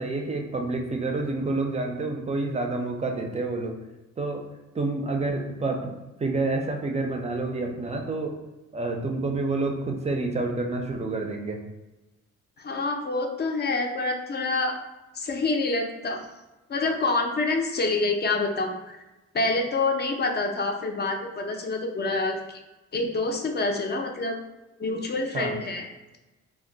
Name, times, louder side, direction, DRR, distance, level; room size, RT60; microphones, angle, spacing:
voice 1, 0.0-3.8 4.2-4.5 4.7-8.4 8.7-11.6 25.3-25.6, right 3 dB, 20° right, 3 dB, 0.5 m, -28 dB
voice 2, 12.6-14.8 15.1-16.2 16.7-19.0 19.3-22.6 22.9-24.4 24.8-25.8, left 3 dB, 35° left, 3 dB, 0.5 m, -27 dB
2.3 x 2.1 x 3.8 m, 1.1 s
cardioid pair, 90°, 30 cm